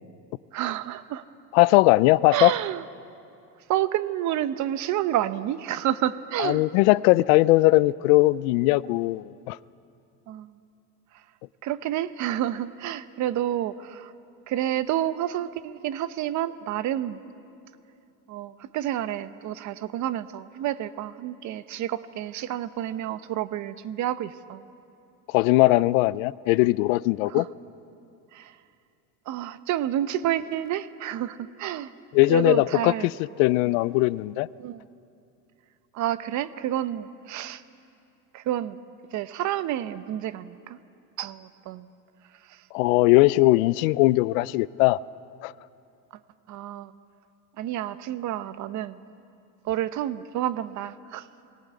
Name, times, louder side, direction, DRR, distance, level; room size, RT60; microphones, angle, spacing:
voice 1, 0.5-1.2 2.3-2.8 3.7-6.6 10.3-10.5 11.6-14.1 14.5-17.2 18.3-24.6 27.3-27.5 28.3-28.5 29.3-31.9 32.3-33.1 34.6-34.8 35.9-37.6 38.3-38.8 39.1-40.8 41.2-41.9 42.5-42.6 46.5-46.9 47.6-49.0 49.6-51.3, right 12 dB, 45° right, 0.8 m, -29 dB
voice 2, 1.5-2.5 6.4-9.6 25.3-27.4 32.1-33.1 33.4-34.5 42.7-45.0 45.4-45.5, left 20 dB, 75° left, 0.6 m, -20 dB
18.5 x 18.0 x 9.4 m
supercardioid pair, 115°, 41 cm